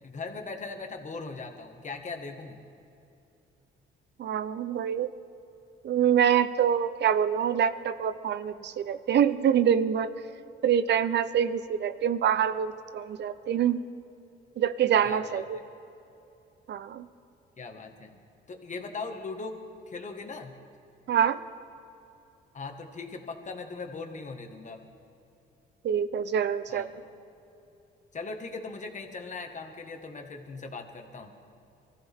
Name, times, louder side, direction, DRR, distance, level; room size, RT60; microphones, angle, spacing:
voice 1, 0.0-2.6 15.0-15.6 17.6-18.2 18.5-19.6 19.9-20.6 22.5-24.8 26.7-27.0 28.1-31.4, left 4 dB, 40° left, 4 dB, 1.7 m, -39 dB
voice 2, 4.2-5.1 5.8-10.1 10.6-13.9 14.6-15.6 16.7-17.1 21.1-21.4 25.8-26.9, right 8 dB, 60° right, 13 dB, 0.7 m, -25 dB
23.5 x 14.5 x 3.6 m, 2.8 s
cardioid pair, 90°, 20 cm